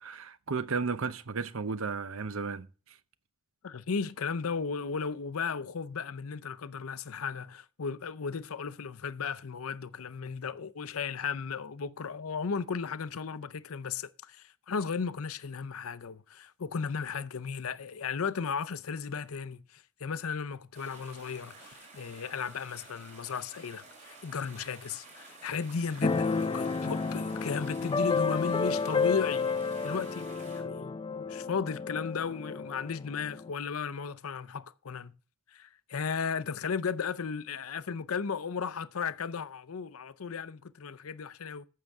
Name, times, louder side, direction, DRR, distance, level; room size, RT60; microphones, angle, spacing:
voice 1, 0.0-2.7, right 5 dB, 70° right, 0.8 m, -33 dB
voice 2, 3.6-35.1 35.5-41.7, left 5 dB, 85° left, 0.6 m, -35 dB
sound 1, 20.7-30.6, right 3 dB, 35° right, 4.6 m, -52 dB
Keyboard (musical), 26.0-33.5, left 4 dB, 25° left, 0.4 m, -31 dB
14.5 x 6.6 x 3.6 m
head